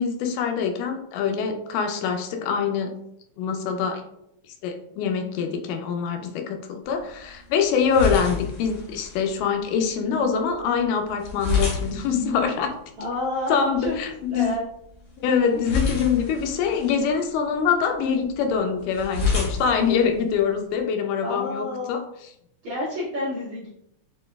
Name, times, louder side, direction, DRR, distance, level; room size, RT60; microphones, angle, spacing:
voice 1, 0.0-2.9 3.4-4.0 4.6-12.7 13.5-14.5 15.2-22.3, left 6 dB, 90° left, 5 dB, 2.2 m, -24 dB
sound 1, 6.8-20.8, left 4 dB, 60° left, 1.8 m, -32 dB
voice 2, 13.0-14.0 14.3-14.6 21.2-22.0 22.6-23.7, left 1 dB, 70° right, -8 dB, 1.4 m, -29 dB
6.4 x 2.2 x 2.2 m, 0.79 s
omnidirectional pair, 3.7 m